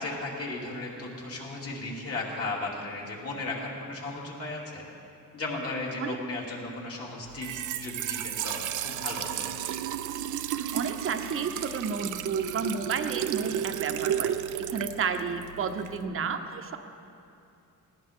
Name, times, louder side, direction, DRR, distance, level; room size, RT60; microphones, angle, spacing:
voice 1, 0.0-4.8 5.3-7.5 7.7-9.5, left 2 dB, 45° left, -4 dB, 3.0 m, -35 dB
Trickle dribble / Fill (with liquid), 7.3-16.1, right 10 dB, 70° right, 0.6 m, -33 dB
voice 2, 10.5-16.8, right 5 dB, 40° right, 7 dB, 0.9 m, -32 dB
19.5 x 16.5 x 3.7 m, 2.6 s
wide cardioid pair, 175°, 32 cm